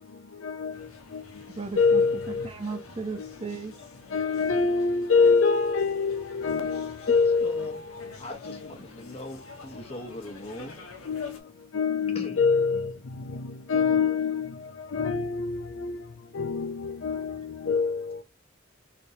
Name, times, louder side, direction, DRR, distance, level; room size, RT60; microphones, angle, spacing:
voice 1, 0.4-1.2 1.8-2.5 3.2-3.3 4.1-8.1 8.4-8.6 11.1-11.4 11.7-12.9 13.3-16.0 16.3-18.2, left 5 dB, 65° left, 0.5 m, -25 dB
sound 1, 0.7-11.4, left 4 dB, 90° left, 0.8 m, -48 dB
voice 2, 1.6-2.0 2.5-3.7, right 4 dB, 30° right, 0.5 m, -35 dB
voice 3, 7.1-7.8 8.2-10.8 12.1-12.4, left 1 dB, 30° left, 0.8 m, -40 dB
3.3 x 3.0 x 2.7 m
head